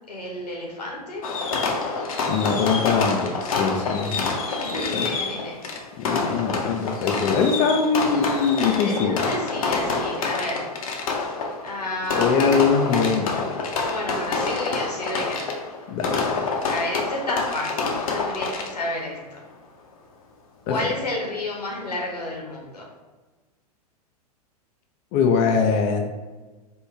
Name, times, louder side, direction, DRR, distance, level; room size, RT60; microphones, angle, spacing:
voice 1, 0.1-1.3 4.5-5.6 8.6-10.7 11.6-12.6 13.8-15.5 16.7-19.4 20.7-22.9, left 1 dB, 80° left, -2 dB, 1.1 m, -31 dB
Fireworks, 1.2-19.0, left 4 dB, 60° left, 0.7 m, -27 dB
voice 2, 2.2-4.3 4.9-5.1 6.0-9.3 12.1-13.6 15.9-16.4 20.7-20.9 25.1-26.1, left 5 dB, 30° left, 3 dB, 0.4 m, -22 dB
4.6 x 2.3 x 3.2 m, 1.3 s
figure-of-eight pair, 100°, 20 cm